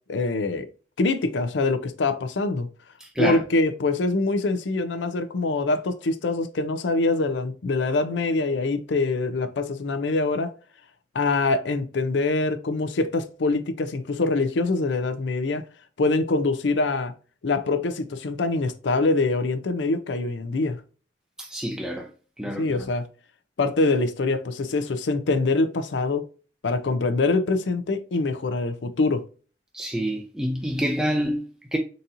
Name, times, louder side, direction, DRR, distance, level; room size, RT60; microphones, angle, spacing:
voice 1, 0.1-0.7 1.0-2.7 3.2-10.5 11.1-15.7 16.0-17.1 17.4-20.8 22.6-23.1 23.6-26.2 26.6-29.2, left 3 dB, 85° left, 0.5 m, -24 dB
voice 2, 3.0-3.4 21.4-22.1 22.4-22.9 29.7-31.8, equal, 5° right, 0.5 m, -27 dB
4.0 x 2.7 x 2.5 m
head